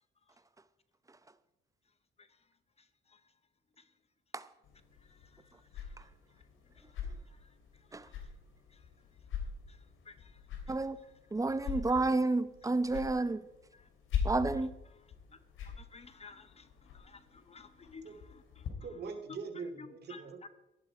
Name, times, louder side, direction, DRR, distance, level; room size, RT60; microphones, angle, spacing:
voice 1, 2.8-3.2 3.8-3.9 5.0-6.0 6.7-8.3 8.7-8.9 9.7-11.2 11.6-11.8 12.6-12.7 13.7-13.9 14.6-19.0 19.3-19.4 19.8-20.5, left 5 dB, 30° left, 0.9 m, -56 dB
sound 1, 4.6-18.7, left 6 dB, 80° left, 2.7 m, -43 dB
voice 2, 11.3-13.4 14.2-14.7, right 2 dB, 15° right, 0.8 m, -30 dB
voice 3, 18.8-20.5, right 4 dB, 55° right, 2.4 m, -42 dB
13.0 x 11.0 x 5.0 m
cardioid pair, 90°, 20 cm